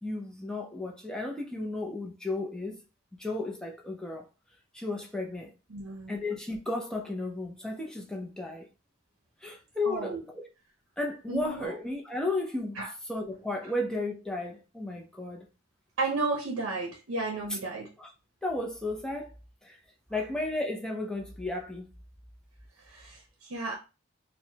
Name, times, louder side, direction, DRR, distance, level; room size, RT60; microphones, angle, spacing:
voice 1, 0.0-2.8 3.1-4.2 4.7-5.5 6.1-8.7 9.4-10.4 11.0-15.5 17.5-17.6 18.0-18.1 18.4-19.3 19.6-19.8 20.1-21.9, left 2 dB, 5° left, 0.6 m, -34 dB
voice 2, 5.7-6.1 9.8-10.2 11.3-11.7 12.8-12.9 16.0-17.9 22.9-23.7, right 3 dB, 60° right, 0.7 m, -33 dB
4.6 x 2.2 x 2.8 m
head